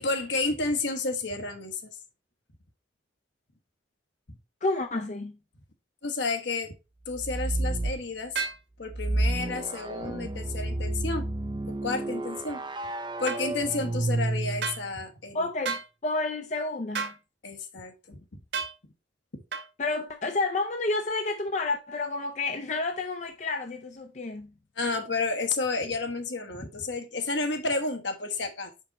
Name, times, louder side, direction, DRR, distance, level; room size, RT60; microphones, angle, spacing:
voice 1, 0.0-2.0 4.3-4.4 6.0-6.7 7.1-8.4 8.8-11.3 11.7-12.7 13.2-15.5 17.4-18.2 19.3-19.4 24.8-28.7, left 3 dB, 70° left, 1.2 m, -31 dB
voice 2, 4.6-5.4 15.3-17.1 19.8-24.5, left 3 dB, 40° left, 0.5 m, -30 dB
sound 1, 7.1-8.1 8.9-14.9, right 2 dB, 25° right, 0.4 m, -31 dB
sound 2, 8.3-8.6 13.3-13.4 14.6-14.8 15.6-15.9 16.9-17.2 18.5-18.7 19.5-19.7, right 5 dB, 65° right, 1.6 m, -31 dB
5.7 x 5.3 x 4.0 m
head